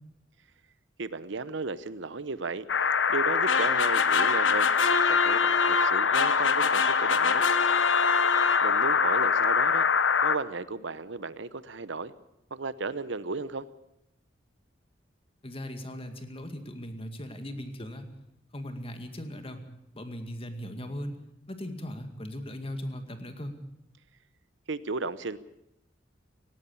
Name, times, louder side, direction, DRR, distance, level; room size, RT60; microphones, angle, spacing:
voice 1, 1.0-2.7 3.1-7.4 8.6-9.9 10.2-12.1 12.5-13.7 24.7-25.4, right 3 dB, 70° right, 15 dB, 0.9 m, -34 dB
sound 1, 2.7-10.4, left 6 dB, 65° left, 1.0 m, -24 dB
sound 2, 3.5-9.0, left 4 dB, 85° left, 1.3 m, -28 dB
voice 2, 15.4-18.1 18.5-19.6 19.9-23.6, equal, 30° left, 7 dB, 2.2 m, -38 dB
18.0 x 18.0 x 8.6 m, 0.82 s
head